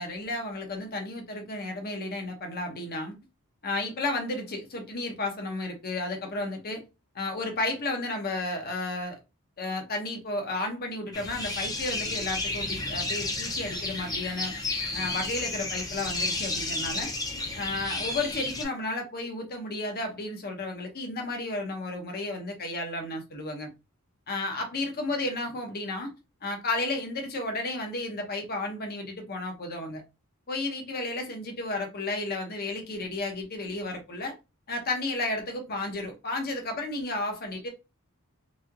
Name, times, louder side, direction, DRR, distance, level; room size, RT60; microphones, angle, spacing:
voice 1, 0.0-3.1 3.6-6.8 7.1-9.2 9.6-14.5 14.9-17.1 17.5-23.7 24.3-26.1 26.4-30.0 30.5-34.3 34.7-37.7, left 2 dB, 45° left, 0.9 m, -32 dB
sound 1, 11.1-18.6, left 2 dB, 15° left, 0.7 m, -32 dB
3.1 x 2.7 x 2.4 m
head